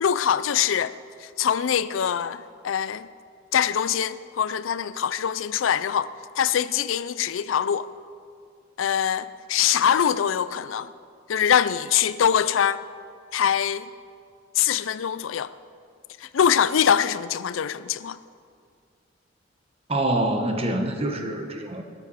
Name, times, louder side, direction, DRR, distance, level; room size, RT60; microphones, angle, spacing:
voice 1, 0.0-3.1 3.5-7.9 8.8-10.9 11.3-12.8 13.3-13.9 14.6-15.5 16.2-18.2, left 8 dB, 85° left, 0.4 m, -23 dB
voice 2, 19.9-21.8, right 1 dB, 30° right, 1.2 m, -25 dB
21.5 x 7.1 x 5.7 m
head